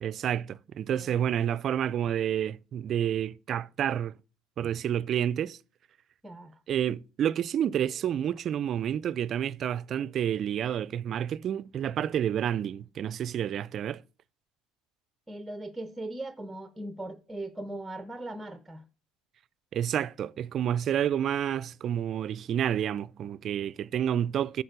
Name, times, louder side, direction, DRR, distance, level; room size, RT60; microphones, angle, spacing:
voice 1, 0.0-4.1 4.6-5.6 6.7-14.0 19.7-24.6, right 10 dB, 50° right, 0.4 m, -29 dB
voice 2, 0.9-1.3 6.2-6.6 15.3-18.8, right 1 dB, 10° right, 0.7 m, -39 dB
9.8 x 4.4 x 6.7 m
supercardioid pair, 90°, 0 cm